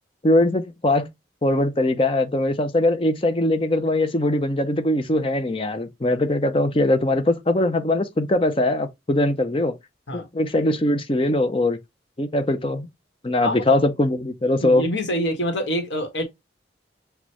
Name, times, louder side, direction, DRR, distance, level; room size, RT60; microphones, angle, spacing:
voice 1, 0.2-1.1 1.4-9.8 10.1-11.8 12.2-12.9 13.2-14.8, left 1 dB, 30° left, 0.6 m, -21 dB
voice 2, 14.6-16.2, equal, 80° left, 1.4 m, -25 dB
6.2 x 2.4 x 3.0 m
head